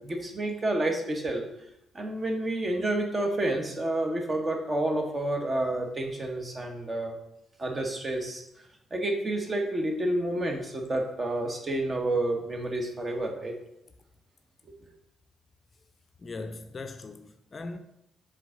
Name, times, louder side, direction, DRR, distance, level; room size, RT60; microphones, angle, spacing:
voice 1, 0.0-1.4 1.9-7.2 7.6-8.4 8.9-13.5, right 1 dB, 35° right, 1.4 m, -29 dB
voice 2, 16.2-17.8, left 3 dB, 40° left, 0.5 m, -39 dB
7.3 x 3.9 x 3.9 m
figure-of-eight pair, 40°, 0 cm